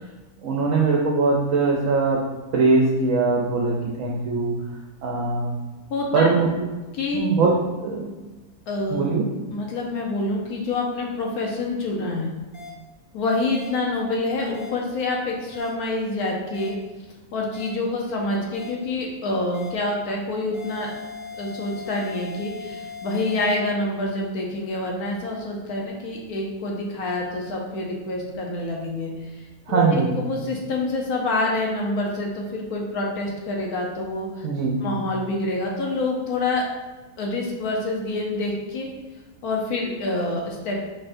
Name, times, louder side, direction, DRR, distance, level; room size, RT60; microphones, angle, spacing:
voice 1, 0.4-2.2 2.5-4.5 5.0-5.5 6.1-6.5 7.1-7.5 7.8-8.1 8.9-9.2 29.7-30.1 34.4-34.8, right 4 dB, 65° right, -1 dB, 1.0 m, -21 dB
voice 2, 5.9-6.4 7.0-7.2 8.7-9.1 9.5-12.3 13.1-16.7 17.3-20.9 21.4-29.1 29.7-34.4 34.8-36.6 37.2-38.9 39.4-40.7, left 2 dB, 80° left, -1 dB, 1.3 m, -27 dB
sound 1, 12.5-12.7 13.5-13.7 14.5-14.7 15.5-15.7 16.5-16.7 17.5-17.7 18.5-18.7 19.5-19.7 20.5-23.5, left 5 dB, 55° left, 1.8 m, -38 dB
4.3 x 4.2 x 2.6 m, 1.2 s
omnidirectional pair, 1.6 m